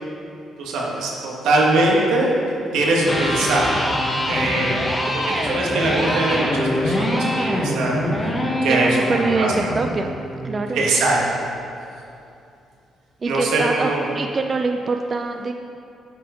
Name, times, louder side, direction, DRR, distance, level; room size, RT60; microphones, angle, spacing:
voice 1, 0.6-2.3 2.7-3.9 4.3-8.3 8.6-9.1 9.4-9.7 10.7-11.4 13.2-14.0, right 2 dB, 85° right, -3 dB, 1.5 m, -22 dB
Electric guitar, 3.0-11.0, left 1 dB, 15° left, 1.3 m, -24 dB
voice 2, 8.7-10.1 10.4-10.9 13.2-15.5, right 3 dB, 35° right, 5 dB, 0.4 m, -24 dB
8.8 x 4.6 x 5.0 m, 2.7 s
cardioid pair, 90°, 0 cm